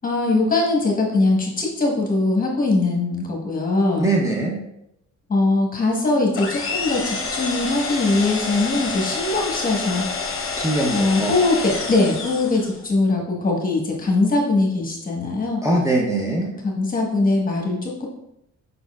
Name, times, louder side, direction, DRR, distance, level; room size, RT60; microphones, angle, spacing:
voice 1, 0.0-4.1 5.3-10.1 10.9-15.6 16.6-18.1, left 2 dB, 30° left, -1 dB, 1.3 m, -21 dB
voice 2, 4.0-4.6 10.6-11.3 15.6-16.5, right 2 dB, 10° right, -3 dB, 0.8 m, -21 dB
sound 1, 6.3-12.8, left 4 dB, 45° left, 0.9 m, -28 dB
5.2 x 4.1 x 2.4 m, 0.79 s
cardioid pair, 90°, 30 cm